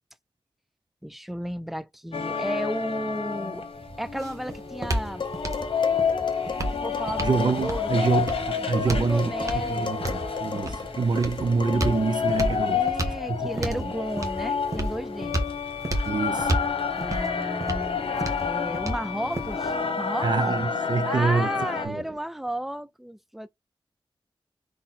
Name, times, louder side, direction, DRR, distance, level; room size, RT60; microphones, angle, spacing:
voice 1, 1.0-3.7 4.0-5.2 6.8-8.2 8.6-9.9 12.7-15.5 17.0-18.0 18.4-20.3 21.0-23.5, equal, ahead, 0.4 m, -33 dB
sound 1, 2.1-21.9, left 6 dB, 85° left, 1.0 m, -30 dB
sound 2, 3.7-19.8, right 1 dB, 35° right, 1.1 m, -32 dB
Dishes pots and pans, 5.2-12.1, left 5 dB, 55° left, 0.7 m, -38 dB
voice 2, 7.2-12.9 13.3-13.9 16.0-16.6 20.2-21.5 21.8-22.2, right 4 dB, 50° right, 0.7 m, -26 dB
3.9 x 3.1 x 4.2 m
wide cardioid pair, 100°, 9 cm